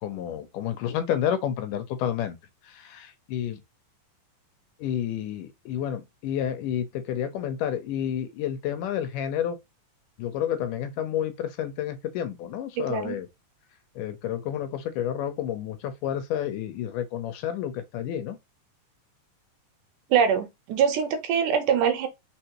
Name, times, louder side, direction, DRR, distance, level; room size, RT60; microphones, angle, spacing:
voice 1, 0.0-2.4 2.7-3.6 4.8-9.6 10.2-13.3 14.0-18.4, left 10 dB, 80° left, 2.2 m, -30 dB
voice 2, 12.8-13.2 20.1-22.1, right 7 dB, 75° right, 2.2 m, -23 dB
4.4 x 4.2 x 2.8 m
omnidirectional pair, 3.8 m